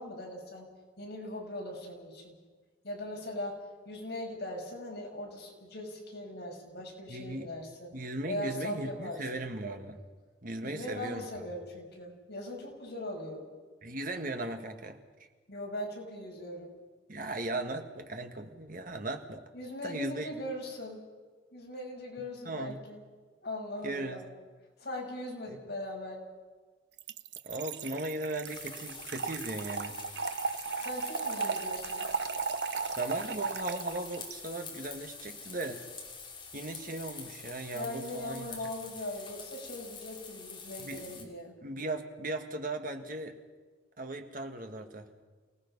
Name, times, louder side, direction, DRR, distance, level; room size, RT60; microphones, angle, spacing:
voice 1, 0.0-2.4 2.8-7.9 8.3-9.4 10.6-13.5 15.5-16.8 19.5-21.0 21.5-23.0 23.4-24.2 24.8-26.3 30.7-32.0 37.7-41.5, left 1 dB, 60° left, -1 dB, 5.9 m, -40 dB
voice 2, 7.1-7.5 7.9-10.0 10.4-11.2 13.8-15.0 17.1-19.4 19.8-20.3 22.5-22.8 23.8-24.2 25.5-25.6 27.4-30.0 33.0-35.8 36.5-38.7 40.8-41.3 41.6-43.4 44.0-45.1, right 2 dB, 45° right, 5 dB, 1.7 m, -37 dB
Trickle dribble / Fill (with liquid), 27.0-34.3, right 5 dB, 65° right, 0.6 m, -36 dB
sound 1, 28.4-41.2, left 5 dB, 25° left, 2.6 m, -46 dB
28.5 x 18.5 x 5.5 m, 1.4 s
head